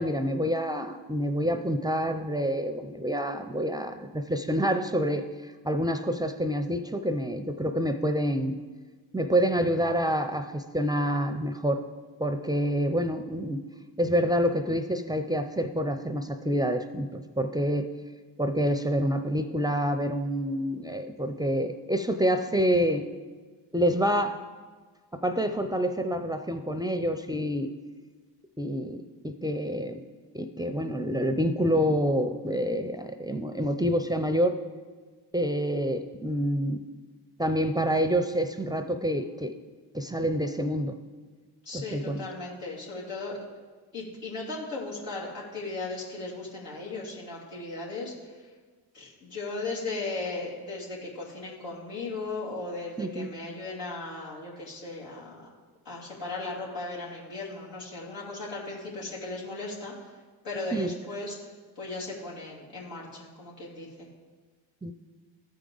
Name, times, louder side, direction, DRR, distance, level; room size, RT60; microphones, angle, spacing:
voice 1, 0.0-5.2 5.6-8.6 9.1-11.8 12.2-13.6 14.0-17.9 18.4-23.1 23.7-24.4 25.2-27.7 28.6-30.0 30.3-34.6 35.3-36.8 37.4-39.5 39.9-41.0 41.7-42.2 53.0-53.3 60.7-60.9 64.8-64.9, equal, 10° right, 7 dB, 0.5 m, -27 dB
voice 2, 41.6-43.4 43.9-48.4 48.9-55.4 55.8-59.9 60.4-61.4 61.8-64.1, left 3 dB, 85° left, -6 dB, 2.8 m, -37 dB
14.0 x 4.7 x 3.9 m, 1.4 s
supercardioid pair, 65°, 42 cm